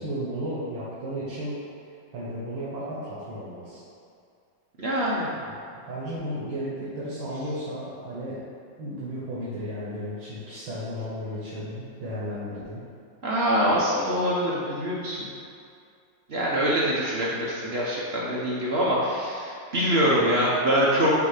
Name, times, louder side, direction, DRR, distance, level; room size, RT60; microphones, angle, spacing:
voice 1, 0.0-1.6 2.1-3.8 5.4-5.6 5.9-8.4 8.8-12.8, equal, 85° right, -9 dB, 2.0 m, -34 dB
voice 2, 4.8-5.3 13.2-15.3 16.3-21.1, equal, 55° right, -6 dB, 0.7 m, -24 dB
8.1 x 2.7 x 4.9 m, 2.4 s
omnidirectional pair, 2.1 m